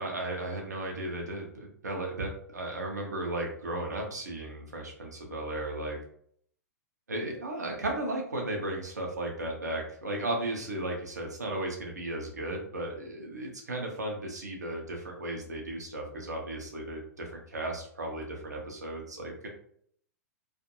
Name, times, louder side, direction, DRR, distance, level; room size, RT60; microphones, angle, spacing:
voice 1, 0.0-6.0 7.1-19.5, right 1 dB, 80° right, 0 dB, 0.7 m, -35 dB
2.5 x 2.5 x 2.7 m, 0.62 s
figure-of-eight pair, 100°, 9 cm